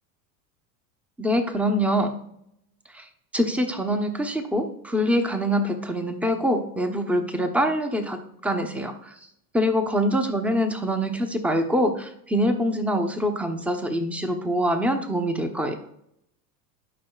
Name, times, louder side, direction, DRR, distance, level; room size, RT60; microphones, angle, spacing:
voice 1, 1.2-2.1 2.9-3.1 3.3-9.2 9.5-15.8, equal, 5° right, 6 dB, 0.9 m, -24 dB
12.0 x 5.7 x 2.4 m, 0.73 s
hypercardioid pair, 100°, 50 cm